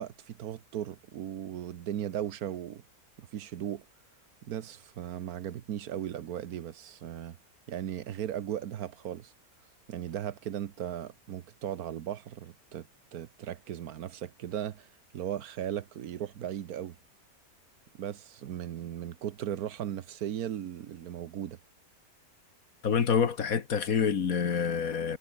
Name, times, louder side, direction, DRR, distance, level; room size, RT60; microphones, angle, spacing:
voice 1, 0.0-2.8 3.2-3.8 4.4-7.4 7.7-9.3 9.9-12.9 13.1-17.0 17.9-21.6, right 10 dB, 80° right, 1.4 m, -37 dB
voice 2, 22.8-25.2, left 6 dB, 70° left, 1.9 m, -27 dB
omnidirectional pair, 1.6 m